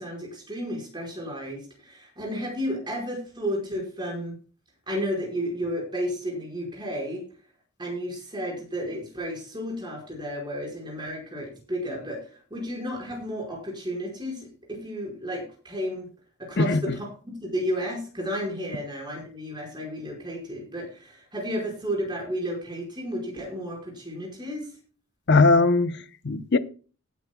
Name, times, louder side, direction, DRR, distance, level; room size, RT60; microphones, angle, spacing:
voice 1, 0.0-4.3 4.9-7.2 7.8-12.2 12.5-16.1 16.4-24.7, equal, 20° right, 5.0 m, -32 dB
voice 2, 25.3-26.6, left 3 dB, 50° left, 0.8 m, -20 dB
18.5 x 9.3 x 2.3 m
head